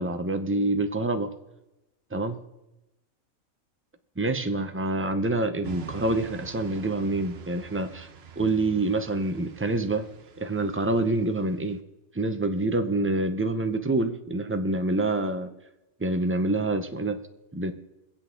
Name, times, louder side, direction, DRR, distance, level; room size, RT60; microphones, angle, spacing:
voice 1, 0.0-1.3 2.1-2.4 4.2-8.1 8.4-10.1 10.4-11.8 12.1-15.5 16.0-17.2 17.5-17.7, right 2 dB, 15° right, 7 dB, 0.4 m, -26 dB
sound 1, 5.6-11.8, right 8 dB, 55° right, 0.9 m, -45 dB
23.5 x 8.1 x 3.8 m, 0.97 s
omnidirectional pair, 1.5 m